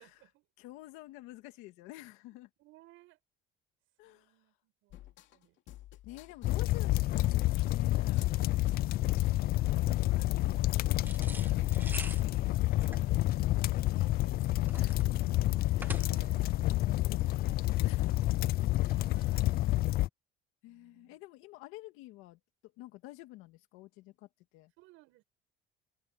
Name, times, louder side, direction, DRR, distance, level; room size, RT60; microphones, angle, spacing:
voice 1, 0.0-0.5 2.6-3.2 4.0-5.6 6.4-6.6 8.1-9.2 9.4-12.3 15.7-16.5 18.8-19.5 20.7-21.2 24.8-25.2, right 19 dB, 75° right, 8.0 m, -62 dB
voice 2, 0.6-2.5 4.0-4.3 6.0-8.3 12.6-15.2 15.7-16.1 16.7-18.3 20.6-22.4 22.8-24.3 24.5-24.7, left 18 dB, 90° left, 2.2 m, -50 dB
sound 1, 4.9-14.4, left 14 dB, 65° left, 2.6 m, -53 dB
sound 2, 6.4-20.1, left 16 dB, 50° left, 0.4 m, -29 dB
sound 3, 11.0-16.4, right 2 dB, 10° right, 1.2 m, -46 dB
cardioid pair, 145°, 21 cm